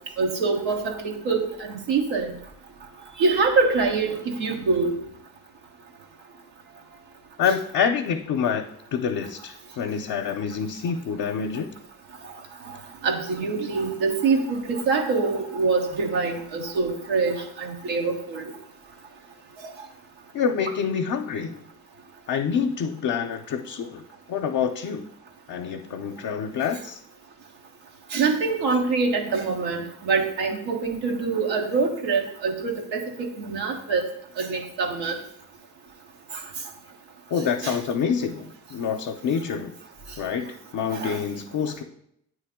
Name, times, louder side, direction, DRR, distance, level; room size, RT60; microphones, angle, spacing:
voice 1, 0.2-2.3 3.2-4.9 7.4-7.5 13.0-18.5 28.1-34.1 34.4-35.2 37.6-37.8 40.9-41.2, right 4 dB, 80° right, 1 dB, 1.2 m, -25 dB
voice 2, 7.4-8.6 8.9-11.7 20.3-21.6 22.3-24.0 24.3-25.1 25.5-27.0 37.3-39.7 40.2-41.8, left 7 dB, 55° left, 3 dB, 0.7 m, -27 dB
9.1 x 3.2 x 3.6 m, 0.72 s
hypercardioid pair, 45°, 41 cm